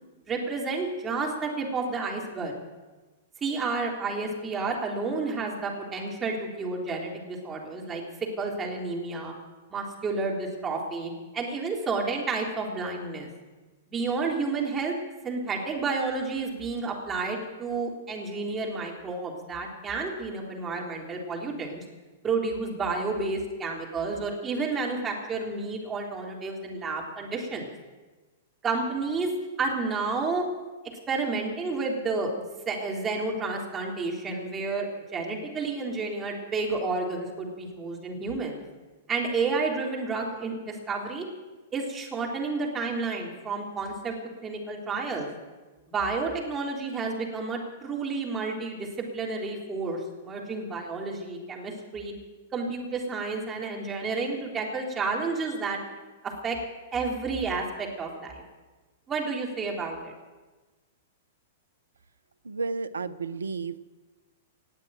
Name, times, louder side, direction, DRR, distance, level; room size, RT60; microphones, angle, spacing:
voice 1, 0.3-2.6 3.4-8.0 8.4-9.3 9.7-13.3 13.9-14.9 15.2-21.8 22.2-27.7 28.6-29.3 29.6-30.4 31.1-32.3 32.7-34.9 35.1-38.6 39.1-41.3 41.7-44.2 44.4-45.3 45.9-52.1 52.5-55.8 56.2-56.6 56.9-58.4 59.1-60.1, right 4 dB, 20° right, -1 dB, 3.7 m, -30 dB
voice 2, 62.4-63.8, right 4 dB, 80° right, 13 dB, 0.7 m, -32 dB
19.0 x 7.5 x 9.2 m, 1.2 s
figure-of-eight pair, 105°, 0 cm